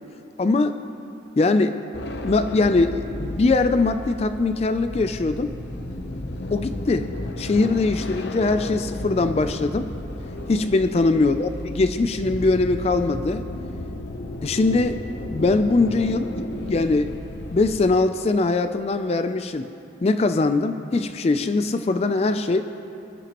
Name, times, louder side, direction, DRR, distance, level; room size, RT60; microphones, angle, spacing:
voice 1, 0.4-0.8 1.4-1.8 2.2-5.5 6.5-9.9 10.5-13.4 14.4-15.0 15.3-16.3 16.7-17.1 17.5-19.7 20.0-22.6, left 3 dB, 35° left, 9 dB, 0.3 m, -21 dB
sound 1, 1.9-17.8, left 1 dB, 70° left, 0.8 m, -33 dB
21.5 x 12.0 x 3.0 m, 2.7 s
head